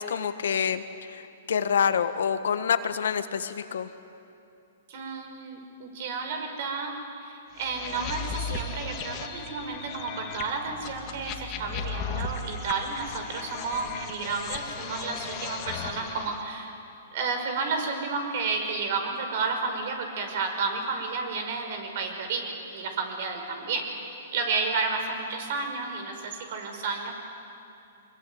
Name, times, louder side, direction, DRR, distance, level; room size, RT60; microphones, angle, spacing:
voice 1, 0.0-3.9, left 7 dB, 75° left, 11 dB, 1.5 m, -27 dB
voice 2, 4.9-16.7 17.1-23.9 24.3-27.1, right 4 dB, 55° right, 4 dB, 5.7 m, -31 dB
sound 1, 7.6-16.4, left 5 dB, 35° left, 2.4 m, -36 dB
24.5 x 22.0 x 9.5 m, 2.7 s
hypercardioid pair, 135°, 0 cm